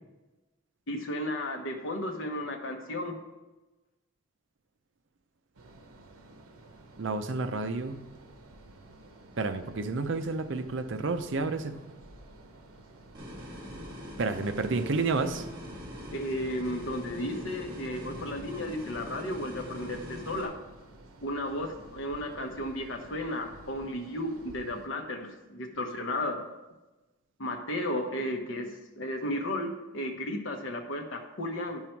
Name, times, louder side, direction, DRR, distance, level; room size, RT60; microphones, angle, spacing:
voice 1, 0.9-3.2 16.1-20.5 21.2-26.5 27.4-31.8, left 1 dB, 65° left, 3 dB, 1.1 m, -34 dB
sound 1, 5.5-24.9, right 1 dB, 80° right, 0.8 m, -53 dB
voice 2, 7.0-8.1 9.4-11.8 14.2-15.5, right 3 dB, 60° right, 9 dB, 0.5 m, -30 dB
sound 2, 13.1-20.4, equal, 20° right, 1.6 m, -42 dB
9.3 x 5.6 x 4.5 m, 1.1 s
head